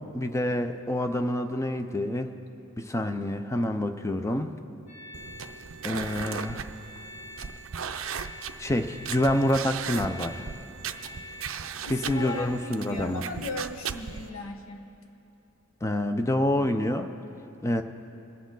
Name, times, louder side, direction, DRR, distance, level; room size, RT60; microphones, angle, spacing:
voice 1, 0.0-2.3 2.8-4.5 5.8-6.6 8.6-10.4 11.9-13.2 15.8-17.1 17.6-17.8, left 1 dB, 15° left, 7 dB, 0.5 m, -27 dB
sound 1, 4.9-12.4, left 1 dB, 55° left, 2.3 m, -46 dB
sound 2, 5.1-14.3, right 7 dB, 65° right, 0.5 m, -37 dB
voice 2, 11.8-14.9, left 3 dB, 70° left, 5 dB, 1.1 m, -37 dB
23.5 x 8.7 x 3.9 m, 3.0 s
head